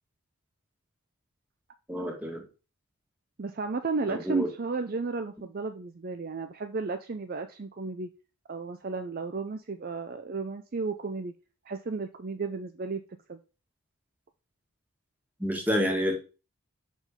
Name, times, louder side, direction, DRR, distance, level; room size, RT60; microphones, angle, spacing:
voice 1, 1.9-2.4 4.1-4.5 15.4-16.1, equal, 10° right, 2 dB, 1.5 m, -28 dB
voice 2, 3.4-8.1 8.5-11.3 11.7-13.0 13.3-13.4, right 3 dB, 40° right, 8 dB, 0.5 m, -33 dB
5.6 x 5.1 x 5.1 m, 0.32 s
head